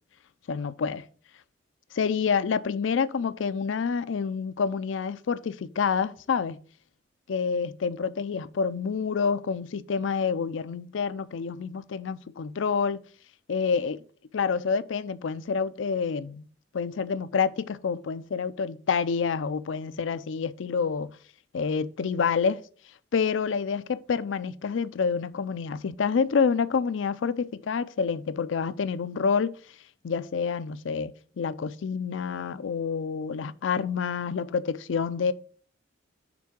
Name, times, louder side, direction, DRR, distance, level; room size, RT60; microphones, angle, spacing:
voice 1, 0.5-1.0 1.9-6.6 7.3-13.0 13.5-14.0 14.3-16.5 16.7-21.1 21.5-22.6 23.1-29.5 30.0-35.3, left 5 dB, 80° left, 0.4 m, -28 dB
6.0 x 3.7 x 6.1 m
head